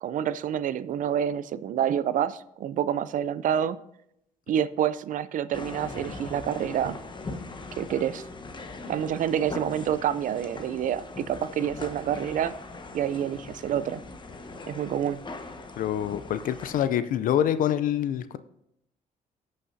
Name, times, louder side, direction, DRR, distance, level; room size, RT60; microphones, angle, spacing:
voice 1, 0.0-3.8 4.5-7.0 7.8-8.2 8.8-12.5 12.9-14.0 14.7-15.2, right 9 dB, 65° right, 16 dB, 0.5 m, -28 dB
sound 1, 5.5-16.9, left 3 dB, 30° left, 1.1 m, -40 dB
voice 2, 15.8-18.4, left 10 dB, 70° left, 13 dB, 0.5 m, -26 dB
17.5 x 6.4 x 2.7 m, 0.78 s
cardioid pair, 80°, 15 cm